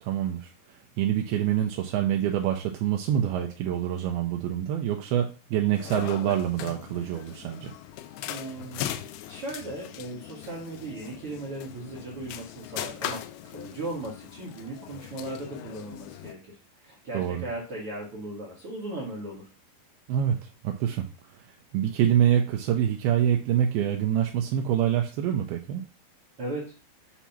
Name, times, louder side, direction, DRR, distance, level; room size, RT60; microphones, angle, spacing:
voice 1, 0.0-7.7 17.1-17.4 20.1-21.1 21.3-21.4 21.7-25.8, right 10 dB, 80° right, 3 dB, 2.4 m, -26 dB
sound 1, 5.7-16.3, left 12 dB, 85° left, 2.2 m, -39 dB
voice 2, 8.3-8.8 9.3-19.5 26.4-26.8, right 2 dB, 65° right, -5 dB, 1.4 m, -37 dB
7.1 x 2.8 x 5.7 m, 0.35 s
omnidirectional pair, 4.8 m